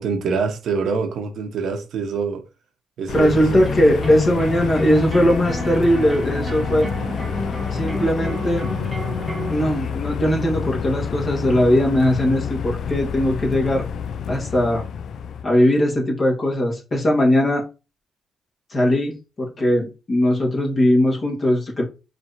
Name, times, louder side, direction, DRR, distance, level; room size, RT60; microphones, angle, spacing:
voice 1, 0.0-2.4 3.0-3.6, right 5 dB, 70° right, 0.9 m, -25 dB
sound 1, 3.1-15.4, left 7 dB, 60° left, 0.3 m, -28 dB
voice 2, 3.1-6.9 7.7-8.7 9.5-13.9 14.3-14.8 15.4-17.6 18.7-21.8, equal, 35° left, 1.4 m, -19 dB
sound 2, 3.3-9.6, left 1 dB, 15° right, 1.1 m, -30 dB
4.5 x 3.3 x 2.7 m
cardioid pair, 90°, 0 cm